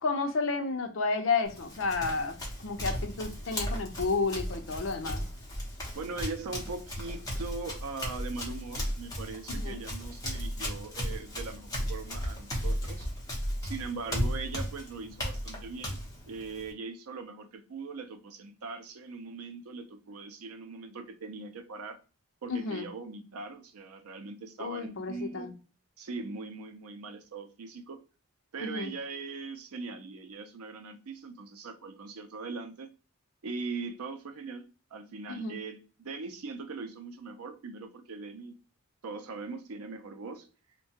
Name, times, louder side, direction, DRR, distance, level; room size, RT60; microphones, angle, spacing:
voice 1, 0.0-2.4 2.6-5.2 9.5-9.8 22.5-22.9 24.6-25.5 28.6-28.9 35.3-35.6, left 4 dB, 60° left, 0.5 m, -31 dB
Run, 1.4-16.7, equal, 15° left, 0.7 m, -36 dB
voice 2, 5.9-13.1 13.6-16.0 16.3-22.0 22.4-25.5 26.0-28.0 28.5-32.9 33.4-38.6 39.0-40.5, right 4 dB, 80° right, 0.5 m, -40 dB
2.7 x 2.2 x 2.7 m
head